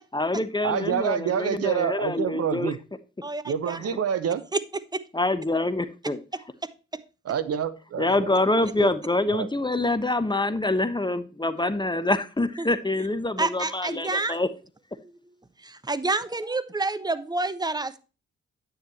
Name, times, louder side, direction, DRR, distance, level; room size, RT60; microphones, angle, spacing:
voice 1, 0.1-2.7 5.1-6.2 8.0-14.5, left 2 dB, 15° left, 1.1 m, -25 dB
voice 2, 0.6-2.8 3.4-4.5 7.2-8.4 8.8-8.9 9.3-9.5, right 8 dB, 50° right, 1.0 m, -27 dB
voice 3, 3.2-3.8 4.5-4.6 4.9-5.0 6.3-7.0 11.6-11.7 12.6-12.7 13.4-14.4 15.0-15.2 15.6-18.0, right 3 dB, 10° right, 1.0 m, -29 dB
10.0 x 9.1 x 2.9 m
figure-of-eight pair, 40°, 32 cm